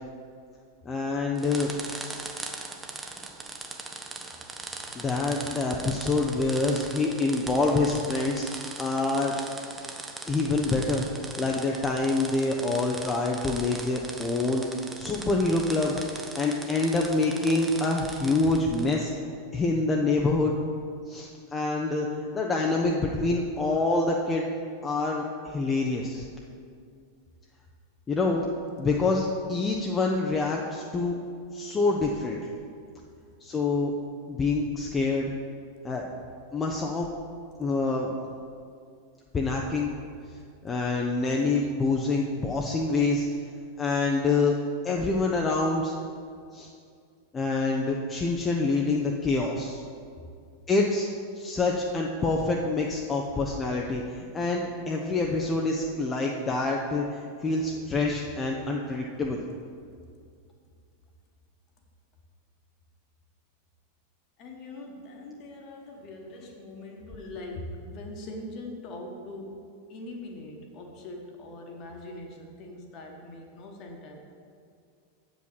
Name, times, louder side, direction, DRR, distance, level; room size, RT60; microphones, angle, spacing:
voice 1, 0.8-1.7 4.9-9.3 10.3-11.1 11.4-16.0 16.4-19.1 19.5-20.5 21.1-22.1 22.3-24.5 24.8-26.2 28.1-28.5 28.8-31.2 31.5-32.4 33.4-33.9 34.3-35.3 35.8-36.0 36.5-37.1 37.6-38.1 39.3-39.9 40.6-43.3 43.8-44.5 44.8-45.9 46.5-46.7 47.3-49.8 50.7-51.1 51.4-59.4, left 3 dB, 20° left, 0 dB, 0.7 m, -26 dB
sound 1, 1.4-19.1, right 3 dB, 15° right, 0.8 m, -40 dB
voice 2, 64.4-74.3, left 1 dB, 40° left, 2 dB, 1.4 m, -42 dB
7.9 x 5.2 x 7.3 m, 2.3 s
figure-of-eight pair, 90°, 0 cm